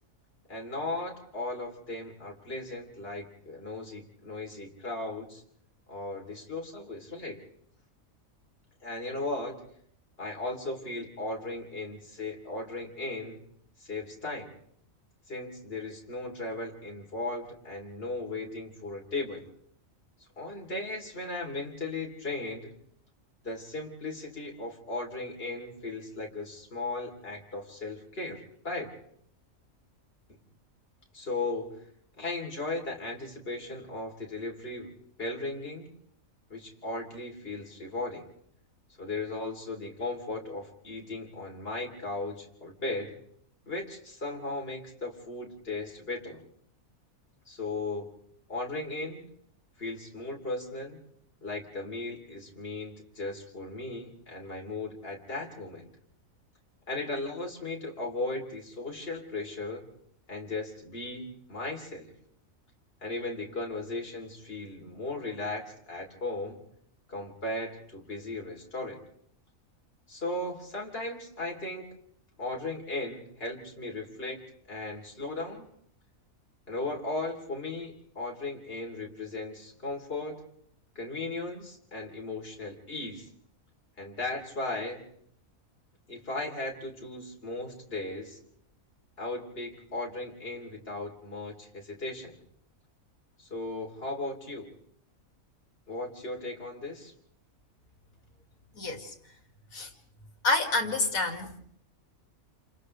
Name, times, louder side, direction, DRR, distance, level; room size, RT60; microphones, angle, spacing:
voice 1, 0.5-5.4 5.9-7.4 8.8-9.6 10.2-13.4 13.8-14.5 15.3-19.5 20.4-22.7 23.4-28.9 31.1-31.8 32.2-34.9 35.2-35.9 36.5-38.2 39.0-43.2 43.7-46.4 47.5-48.1 48.5-49.3 49.8-51.0 51.4-55.9 56.9-59.8 60.3-62.1 63.0-66.6 67.1-69.0 70.1-71.9 72.4-74.4 74.7-75.6 76.7-80.4 81.0-83.3 84.0-85.0 86.1-88.4 89.2-92.4 93.4-94.7 95.9-97.1, left 2 dB, 45° left, 3.7 m, -36 dB
voice 2, 98.8-99.1 99.7-99.9 100.4-101.5, left 3 dB, 80° left, 2.7 m, -28 dB
29.0 x 29.0 x 3.3 m
omnidirectional pair, 1.4 m